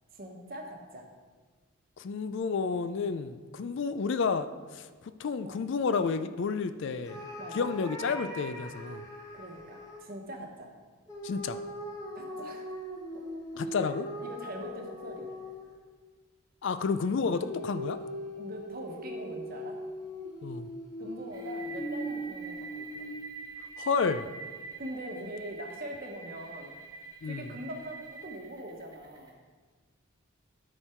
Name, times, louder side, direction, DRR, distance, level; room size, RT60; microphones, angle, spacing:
voice 1, 0.1-1.1 5.4-5.6 7.4-7.7 9.3-10.7 12.1-12.7 13.1-13.2 13.7-13.8 14.2-15.4 18.4-19.8 21.0-23.1 24.8-26.7 27.2-29.4, equal, 45° right, 2 dB, 1.1 m, -42 dB
voice 2, 2.0-4.9 5.2-7.3 7.5-9.0 11.2-11.6 13.6-14.1 16.6-18.0 20.4-20.7 23.8-24.3 27.2-27.5, left 5 dB, 60° left, 11 dB, 0.4 m, -30 dB
sound 1, 7.1-10.0 11.1-15.9 17.3-23.4, equal, 15° left, 1.4 m, -40 dB
sound 2, 21.3-29.3, right 4 dB, 20° right, 1.0 m, -46 dB
12.5 x 4.5 x 4.4 m, 1.4 s
head